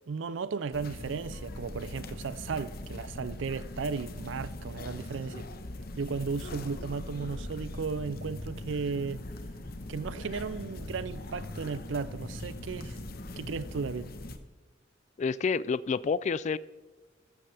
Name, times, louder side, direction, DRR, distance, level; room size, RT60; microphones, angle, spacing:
voice 1, 0.0-5.5 6.0-9.2 9.9-13.0 13.4-14.1, right 5 dB, 75° right, 0.5 m, -35 dB
sound 1, 0.7-14.4, left 1 dB, 55° left, 1.2 m, -41 dB
voice 2, 15.2-16.6, left 5 dB, 40° left, 0.3 m, -28 dB
14.5 x 14.0 x 3.4 m
head